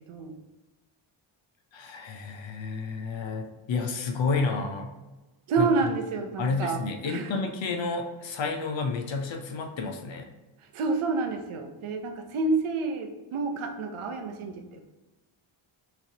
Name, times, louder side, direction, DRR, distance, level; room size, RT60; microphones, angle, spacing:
voice 1, 0.1-0.4 5.5-7.5 10.6-14.8, right 4 dB, 80° right, 5 dB, 0.8 m, -29 dB
voice 2, 1.7-4.9 5.6-5.7 6.4-10.3, left 4 dB, 65° left, 3 dB, 0.7 m, -30 dB
6.0 x 3.1 x 2.8 m, 1.1 s
wide cardioid pair, 115°, 49 cm